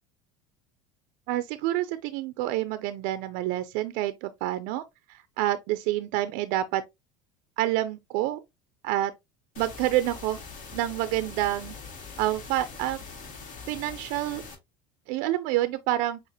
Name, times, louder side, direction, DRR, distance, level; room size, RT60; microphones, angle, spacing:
voice 1, 1.3-4.8 5.1-6.8 7.6-8.4 8.8-9.1 9.6-10.4 10.7-11.7 12.2-13.0 13.7-14.4 15.1-16.2, right 14 dB, 70° right, 0.5 m, -28 dB
sound 1, 9.5-14.5, left 4 dB, 60° left, 1.9 m, -43 dB
6.5 x 2.5 x 2.8 m
supercardioid pair, 110°, 15 cm